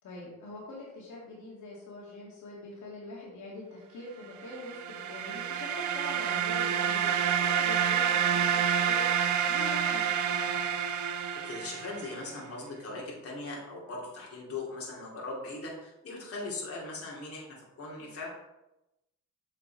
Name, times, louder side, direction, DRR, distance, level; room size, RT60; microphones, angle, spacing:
voice 1, 0.0-10.5, left 2 dB, 70° left, -5 dB, 2.4 m, -44 dB
sound 1, 4.5-12.2, right 8 dB, 70° right, 0.7 m, -28 dB
voice 2, 11.4-18.3, left 2 dB, 50° left, -4 dB, 2.8 m, -39 dB
7.1 x 5.7 x 4.1 m, 0.93 s
cardioid pair, 90°, 30 cm